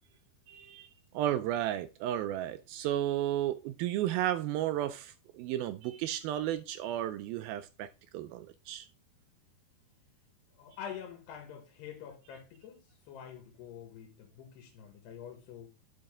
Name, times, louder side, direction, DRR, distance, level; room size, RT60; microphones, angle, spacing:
voice 1, 0.5-8.9, right 12 dB, 85° right, 2.2 m, -33 dB
voice 2, 10.6-12.8 13.1-15.7, left 8 dB, 85° left, 3.6 m, -46 dB
10.5 x 5.6 x 3.7 m
omnidirectional pair, 4.6 m